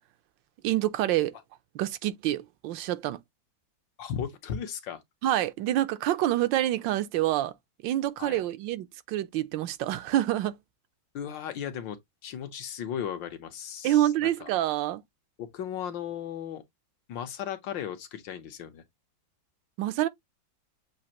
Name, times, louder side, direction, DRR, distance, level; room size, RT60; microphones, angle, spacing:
voice 1, 0.6-1.3 1.7-3.2 5.2-7.5 7.8-10.5 13.8-15.0 19.8-20.1, right 13 dB, 80° right, 1.3 m, -27 dB
voice 2, 4.0-5.0 8.2-8.4 11.1-12.0 12.2-14.1 14.4-14.5 15.4-16.6 17.1-18.8, left 9 dB, 80° left, 1.6 m, -36 dB
7.4 x 2.5 x 2.8 m
omnidirectional pair, 2.0 m